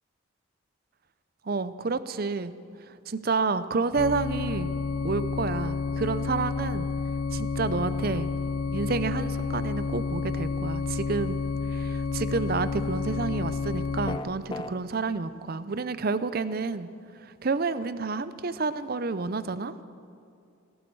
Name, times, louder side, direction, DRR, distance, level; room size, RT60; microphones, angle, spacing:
voice 1, 1.5-2.5 3.1-4.7 5.0-6.9 7.3-8.3 8.7-11.4 11.7-16.9 17.4-19.7, right 4 dB, 45° right, 14 dB, 0.5 m, -29 dB
sound 1, 4.0-14.2, left 4 dB, 85° left, 0.5 m, -30 dB
sound 2, 14.1-14.7, left 2 dB, 20° left, 0.5 m, -34 dB
17.5 x 17.0 x 4.7 m, 2.5 s
head